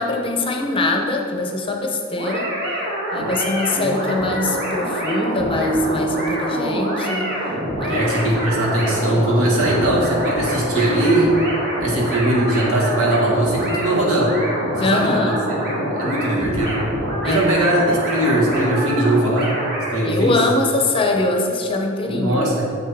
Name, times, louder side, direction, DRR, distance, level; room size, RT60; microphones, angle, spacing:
voice 1, 0.0-2.5 3.1-7.3 7.8-8.1 14.7-15.4 17.2-17.4 20.0-22.5, left 2 dB, 25° left, 1 dB, 0.6 m, -22 dB
sound 1, 2.1-20.0, equal, 45° right, 1.5 m, -26 dB
voice 2, 7.9-11.3 11.8-14.4 14.8-16.8 17.2-19.6 19.9-20.4 22.1-22.7, right 1 dB, 80° right, -3 dB, 1.7 m, -20 dB
7.4 x 6.5 x 3.5 m, 2.8 s
head